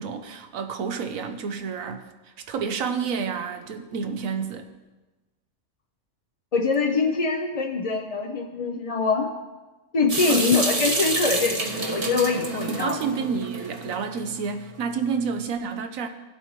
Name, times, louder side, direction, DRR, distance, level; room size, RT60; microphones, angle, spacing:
voice 1, 0.0-2.1 2.4-4.7 10.3-10.5 12.5-16.1, right 6 dB, 90° right, 7 dB, 1.2 m, -29 dB
voice 2, 6.5-9.3 9.9-13.0, left 4 dB, 35° left, 1 dB, 0.6 m, -24 dB
Water tap faucet / Sink (filling or washing) / Drip, 10.1-14.2, right 3 dB, 30° right, 0.9 m, -28 dB
16.0 x 7.7 x 3.1 m, 1.2 s
omnidirectional pair, 1.4 m